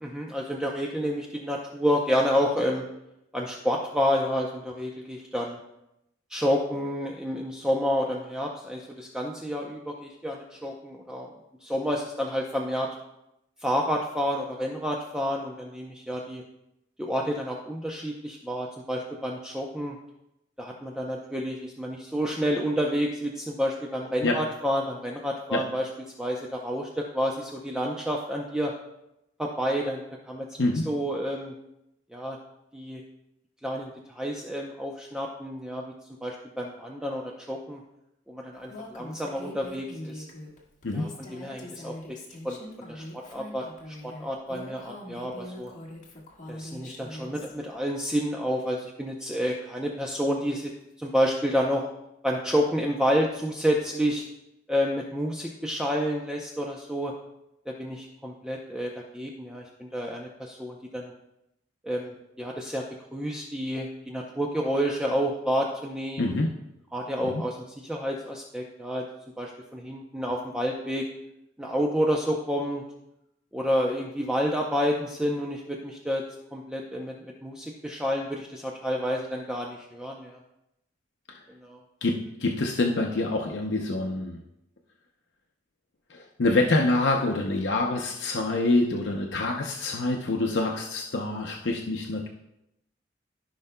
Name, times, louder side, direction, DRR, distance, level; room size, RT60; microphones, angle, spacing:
voice 1, 0.0-2.9 3.3-5.6 6.3-11.3 11.6-12.9 13.6-16.4 17.0-20.0 20.6-25.9 26.2-28.7 29.4-31.5 32.1-32.4 32.7-33.0 33.6-35.9 36.2-37.8 38.3-40.2 40.9-41.9 42.4-42.6 42.9-45.7 46.5-50.7 51.0-51.8 52.2-54.2 54.7-57.1 57.7-61.1 61.8-62.8 63.1-66.3 66.9-69.0 69.4-71.1 71.6-72.8 73.5-76.2 76.5-80.4 81.6-81.8, equal, 5° right, -1 dB, 0.6 m, -29 dB
Female speech woman speaking, 38.7-47.5, left 1 dB, 45° left, 1.5 m, -42 dB
voice 2, 66.2-66.5 81.3-81.4 82.0-84.4 86.1-92.3, left 2 dB, 70° left, 1 dB, 0.7 m, -26 dB
14.5 x 5.6 x 2.2 m, 0.86 s
head